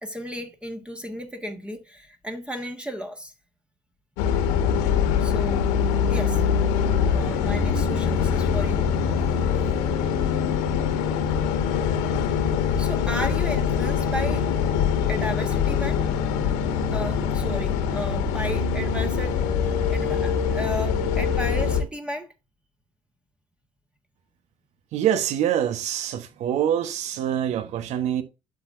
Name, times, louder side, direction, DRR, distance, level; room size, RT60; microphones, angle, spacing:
voice 1, 0.0-3.3 5.2-5.7 6.1-6.4 7.1-8.9 12.8-14.5 15.1-16.0 16.9-22.3, equal, 10° right, 1.4 m, -34 dB
sound 1, 4.2-21.8, left 7 dB, 90° left, 1.6 m, -23 dB
voice 2, 24.9-28.2, right 10 dB, 70° right, 1.1 m, -25 dB
12.0 x 4.0 x 2.6 m
supercardioid pair, 75°, 12 cm